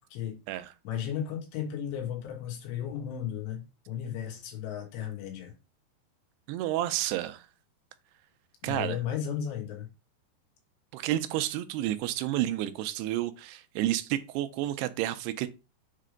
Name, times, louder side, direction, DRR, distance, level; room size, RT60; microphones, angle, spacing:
voice 1, 0.9-5.5 8.6-9.9, left 9 dB, 90° left, 3.7 m, -35 dB
voice 2, 6.5-7.4 8.6-9.0 10.9-15.5, right 14 dB, 85° right, 2.6 m, -30 dB
7.5 x 3.3 x 5.1 m
omnidirectional pair, 4.9 m